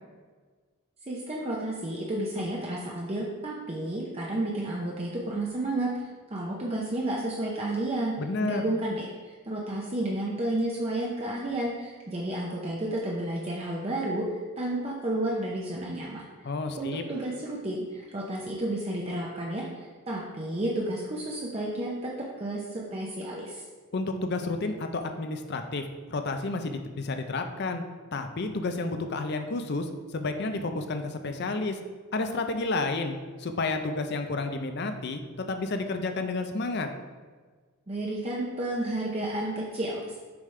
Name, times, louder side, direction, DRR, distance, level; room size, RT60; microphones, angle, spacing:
voice 1, 1.1-8.1 8.4-16.2 16.8-22.1 22.4-23.6 37.9-40.1, right 1 dB, 30° right, -4 dB, 0.6 m, -31 dB
voice 2, 8.2-8.7 16.4-17.0 23.9-27.8 28.1-31.8 32.1-36.9, left 3 dB, 50° left, 7 dB, 0.5 m, -31 dB
7.0 x 5.1 x 3.3 m, 1.5 s
head